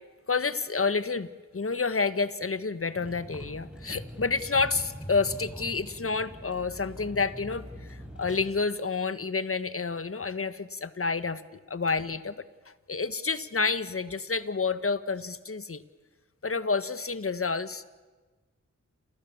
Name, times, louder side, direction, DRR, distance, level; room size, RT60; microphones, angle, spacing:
voice 1, 0.3-1.3 1.5-12.4 12.9-15.8 16.4-17.8, left 4 dB, 50° left, 13 dB, 1.5 m, -29 dB
Vehicle, 3.0-8.4, equal, 5° right, 7.4 m, -43 dB
30.0 x 27.5 x 7.3 m, 1.3 s
cardioid pair, 50°, 29 cm